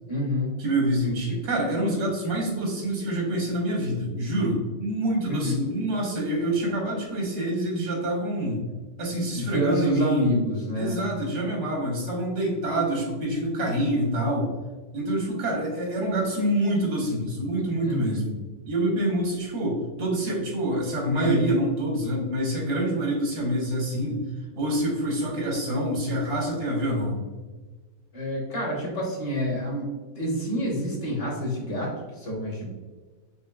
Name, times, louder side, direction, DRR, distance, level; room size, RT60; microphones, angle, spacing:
voice 1, 0.1-0.6 5.2-5.6 9.3-11.0 17.9-18.2 28.1-32.7, equal, 40° left, -4 dB, 1.3 m, -28 dB
voice 2, 0.6-8.6 9.0-10.4 10.7-14.5 14.9-18.4 18.7-24.2 24.6-27.2, right 1 dB, 80° right, -2 dB, 1.8 m, -26 dB
5.2 x 3.5 x 2.3 m, 1.3 s
omnidirectional pair, 1.7 m